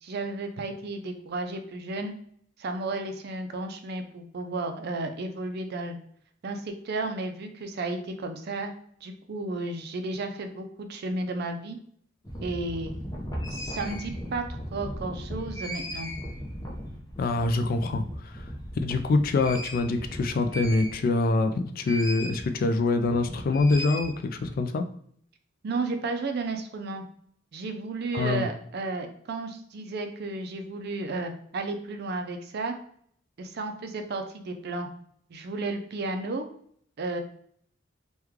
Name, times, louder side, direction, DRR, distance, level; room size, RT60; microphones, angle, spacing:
voice 1, 0.0-2.1 2.6-6.0 6.4-8.7 9.0-11.8 12.4-12.9 13.5-14.4 14.7-16.1 25.6-27.0 27.5-32.7 33.4-34.9 35.3-36.5 37.0-37.2, right 2 dB, 55° right, 6 dB, 0.4 m, -33 dB
sound 1, 12.2-21.3 21.8-22.4 22.7-24.5, equal, 20° left, 0.7 m, -37 dB
voice 2, 17.2-18.5 18.8-24.8 28.1-28.5, left 3 dB, 50° left, 8 dB, 0.3 m, -25 dB
3.0 x 2.2 x 3.5 m, 0.64 s
head